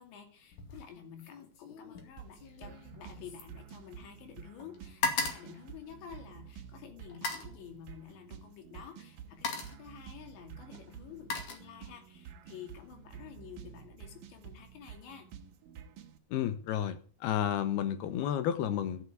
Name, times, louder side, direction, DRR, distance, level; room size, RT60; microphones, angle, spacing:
voice 1, 0.0-15.3, left 8 dB, 85° left, 4.8 m, -50 dB
sound 1, 0.5-0.9 1.2-4.3 4.6-6.5 7.1-7.6 8.6-8.8 9.2-9.9 10.7-12.1 12.5-12.9, left 4 dB, 50° left, 3.4 m, -38 dB
sound 2, 2.2-16.2, right 8 dB, 65° right, 2.6 m, -50 dB
voice 2, 16.3-19.0, left 10 dB, 70° left, 3.0 m, -31 dB
13.0 x 8.4 x 9.1 m
omnidirectional pair, 5.0 m